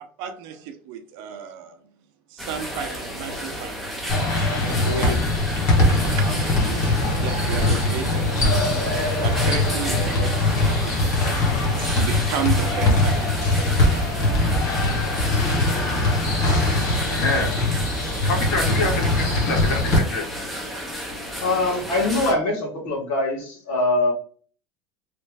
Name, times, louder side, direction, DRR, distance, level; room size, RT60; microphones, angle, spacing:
voice 1, 0.2-1.8 2.3-4.2 4.6-5.2 5.8-8.3 9.2-10.4 10.6-14.2, right 8 dB, 50° right, 0.6 m, -33 dB
sound 1, 2.4-22.3, equal, ahead, 0.5 m, -32 dB
sound 2, 4.1-20.0, left 2 dB, 35° left, 1.1 m, -21 dB
voice 2, 4.8-5.1 15.8-15.9 21.4-24.1, left 2 dB, 55° left, 1.6 m, -23 dB
voice 3, 17.1-17.5 18.5-20.2, left 3 dB, 80° left, 1.4 m, -26 dB
3.2 x 2.5 x 3.2 m
supercardioid pair, 165°, 10 cm